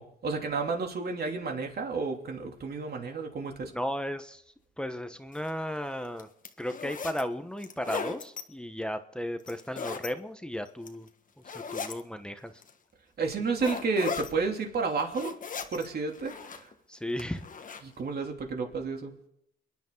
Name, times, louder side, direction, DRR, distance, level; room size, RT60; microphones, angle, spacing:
voice 1, 0.0-3.7 13.2-16.7 17.8-19.1, right 4 dB, 50° right, 2 dB, 3.0 m, -31 dB
voice 2, 3.7-4.4 4.8-6.3 6.6-11.1 11.5-12.5 16.9-17.5, equal, 5° left, 8 dB, 1.2 m, -35 dB
sound 1, 5.3-5.5 6.0-7.2 7.6-8.4 9.4-10.1 10.7-11.1 11.4-12.0 12.6-12.7 13.6-14.3 14.8-15.9 16.1-16.7 17.2-17.8, left 5 dB, 40° left, 1.5 m, -37 dB
29.5 x 10.5 x 3.9 m, 0.76 s
cardioid pair, 90°, 20 cm